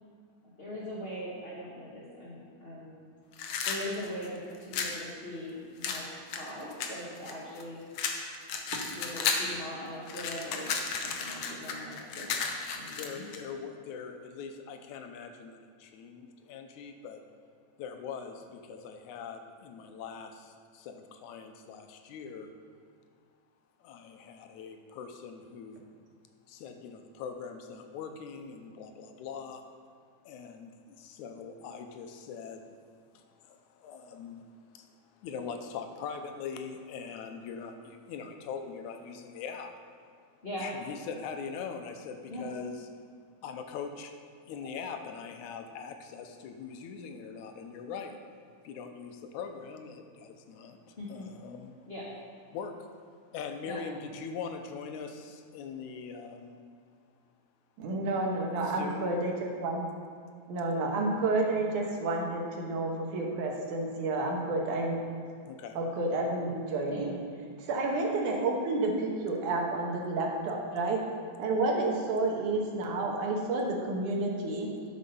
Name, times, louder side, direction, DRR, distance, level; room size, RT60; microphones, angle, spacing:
voice 1, 0.6-3.0 3.6-7.8 8.9-10.7 11.0-13.2 40.4-40.7 42.3-42.4 51.0-51.3 51.9-52.0 53.6-53.8 66.9-67.0, left 1 dB, 50° left, -7 dB, 0.7 m, -41 dB
sound 1, 3.3-5.0 5.8-7.6 8.0-9.6 9.9-13.4, left 6 dB, 65° left, 1.5 m, -33 dB
voice 2, 12.9-17.2 17.8-22.5 23.8-25.9 26.5-29.6 30.2-32.7 33.1-34.5 34.7-34.9 35.2-40.0 40.6-42.8 43.4-44.2 44.5-48.2 48.6-51.8 52.5-53.0 53.3-56.6 58.6-59.2 65.4-65.8, left 6 dB, 90° left, 6 dB, 2.1 m, -42 dB
voice 3, 57.8-59.8 60.5-65.0 65.8-67.1 67.6-71.0 71.4-74.7, right 2 dB, 90° right, 0 dB, 2.8 m, -30 dB
10.5 x 6.2 x 5.5 m, 2.2 s
omnidirectional pair, 3.4 m